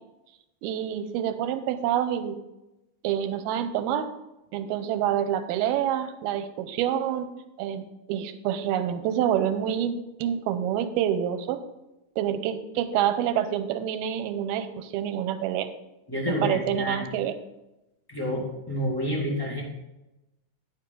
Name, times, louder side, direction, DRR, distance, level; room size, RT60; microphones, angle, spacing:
voice 1, 0.6-2.4 3.0-4.1 4.5-7.3 7.6-11.6 12.2-15.7 16.4-17.3, right 10 dB, 90° right, 10 dB, 2.6 m, -27 dB
voice 2, 16.1-17.1 18.1-19.6, equal, 15° left, -4 dB, 0.7 m, -29 dB
9.7 x 9.7 x 3.9 m, 0.96 s
omnidirectional pair, 4.4 m